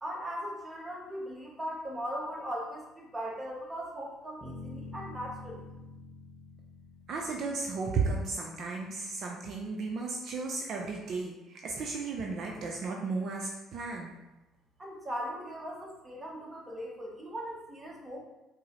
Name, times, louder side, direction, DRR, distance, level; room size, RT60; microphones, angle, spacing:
voice 1, 0.0-5.6 14.8-18.2, equal, 20° right, -2 dB, 0.9 m, -39 dB
sound 1, 4.4-8.4, left 2 dB, 20° left, 1.0 m, -47 dB
voice 2, 7.1-14.1, right 4 dB, 60° right, 0 dB, 0.4 m, -34 dB
4.5 x 2.0 x 2.9 m, 1.0 s
supercardioid pair, 75°, 0 cm